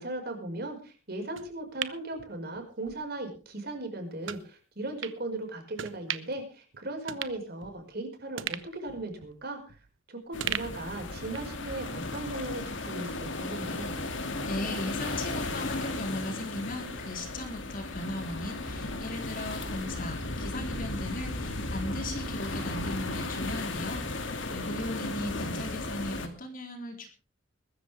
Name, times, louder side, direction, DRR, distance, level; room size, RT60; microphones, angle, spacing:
voice 1, 0.0-9.8 10.1-13.9, right 2 dB, 50° right, 4 dB, 5.4 m, -37 dB
sound 1, 1.4-3.0 3.3-3.5 4.2-4.4 5.0-5.2 5.8-6.4 6.7-6.8 7.1-8.0 8.4-10.0 10.4-11.6 11.9-12.0, right 9 dB, 70° right, 1.1 m, -38 dB
sound 2, 10.3-26.3, left 2 dB, 65° left, 2.5 m, -35 dB
voice 2, 14.4-27.1, left 1 dB, 45° left, 3 dB, 3.8 m, -37 dB
21.5 x 13.5 x 3.5 m, 0.35 s
head